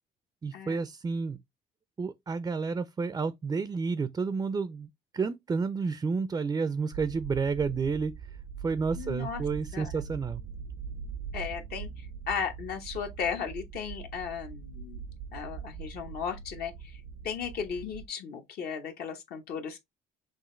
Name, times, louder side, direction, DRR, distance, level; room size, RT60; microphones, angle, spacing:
voice 1, 0.4-1.4 2.0-4.9 5.1-8.1 8.6-10.4, right 5 dB, 20° right, 0.4 m, -30 dB
sound 1, 6.9-18.1, right 6 dB, 80° right, 0.6 m, -42 dB
voice 2, 9.0-9.4 9.7-9.9 11.3-15.0 15.3-19.8, left 7 dB, 65° left, 0.9 m, -36 dB
6.1 x 2.4 x 3.1 m
cardioid pair, 110°, 17 cm